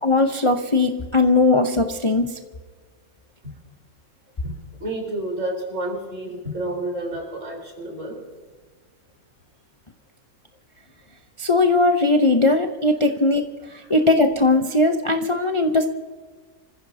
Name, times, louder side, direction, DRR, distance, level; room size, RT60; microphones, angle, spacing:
voice 1, 0.0-2.4 11.4-13.4 13.7-15.9, left 2 dB, 30° left, 4 dB, 0.7 m, -19 dB
voice 2, 4.8-8.2 13.7-13.8, right 1 dB, 60° right, 0 dB, 4.6 m, -30 dB
26.5 x 15.5 x 2.8 m, 1.5 s
omnidirectional pair, 1.5 m